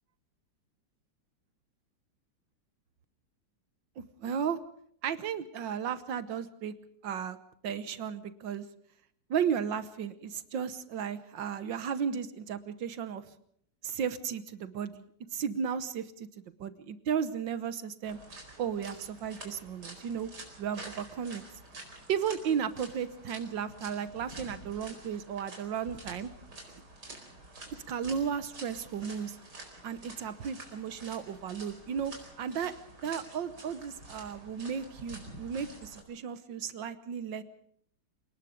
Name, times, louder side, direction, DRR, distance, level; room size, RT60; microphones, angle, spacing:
voice 1, 4.0-4.6 5.0-6.7 7.0-7.4 7.6-8.7 9.3-13.2 13.8-15.1 15.3-18.2 18.6-20.3 20.6-21.4 22.1-26.3 27.9-29.4 29.8-32.7 33.0-37.4, right 7 dB, 85° right, 13 dB, 1.8 m, -34 dB
sound 1, 18.0-36.0, right 2 dB, 60° right, 5.1 m, -48 dB
28.5 x 19.5 x 5.2 m, 0.64 s
omnidirectional pair, 2.0 m